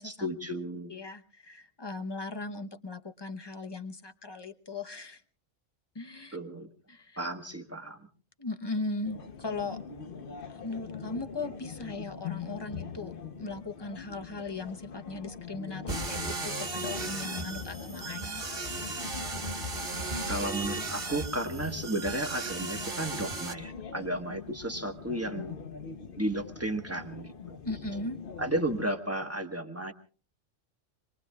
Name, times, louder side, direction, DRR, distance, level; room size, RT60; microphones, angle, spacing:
voice 1, 0.0-0.9 6.3-6.7 7.2-8.1 20.3-25.5 26.2-27.6 28.4-29.9, right 1 dB, 10° right, 6 dB, 1.2 m, -33 dB
voice 2, 0.9-5.2 5.9-6.4 6.9-7.3 8.4-9.8 10.5-18.4 27.6-28.2, left 3 dB, 25° left, 7 dB, 0.8 m, -38 dB
sound 1, 9.0-28.9, left 6 dB, 50° left, 1.0 m, -42 dB
sound 2, 15.9-23.5, right 3 dB, 40° right, 1.6 m, -36 dB
27.0 x 22.5 x 2.3 m, 0.38 s
omnidirectional pair, 1.3 m